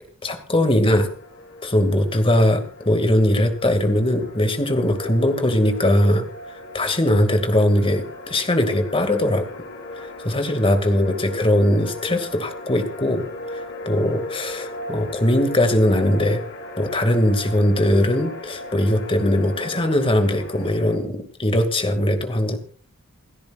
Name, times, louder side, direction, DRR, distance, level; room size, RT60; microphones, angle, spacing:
voice 1, 0.2-1.1 1.6-6.3 6.7-9.5 10.0-16.4 16.8-22.6, left 1 dB, 25° left, 7 dB, 2.3 m, -20 dB
sound 1, 1.0-21.0, left 1 dB, 55° left, 4.4 m, -37 dB
28.5 x 10.5 x 2.5 m, 0.41 s
head